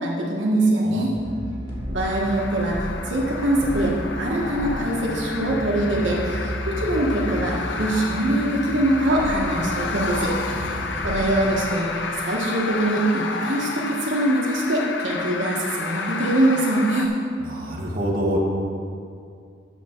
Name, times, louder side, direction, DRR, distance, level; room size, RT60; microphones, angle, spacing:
voice 1, 0.0-1.1 1.9-10.3 11.0-17.1, right 1 dB, 85° right, -3 dB, 1.3 m, -23 dB
voice 2, 0.8-1.1 10.5-11.0 17.4-18.4, equal, 50° right, -3 dB, 1.5 m, -28 dB
sound 1, 1.1-11.5, equal, 50° left, 2.2 m, -33 dB
sound 2, 2.0-17.1, left 4 dB, 80° left, 0.7 m, -31 dB
10.0 x 7.4 x 4.4 m, 2.4 s
head